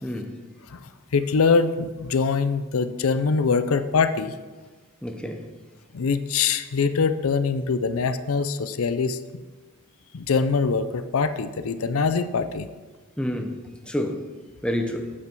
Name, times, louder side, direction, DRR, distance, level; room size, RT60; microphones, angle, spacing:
voice 1, 0.0-0.4 5.0-5.4 13.2-14.3 14.6-15.1, left 1 dB, 5° left, 4 dB, 0.8 m, -29 dB
voice 2, 0.7-4.3 5.9-9.4 10.1-12.7, left 5 dB, 80° left, 11 dB, 0.5 m, -23 dB
8.6 x 8.2 x 4.6 m, 1.3 s
head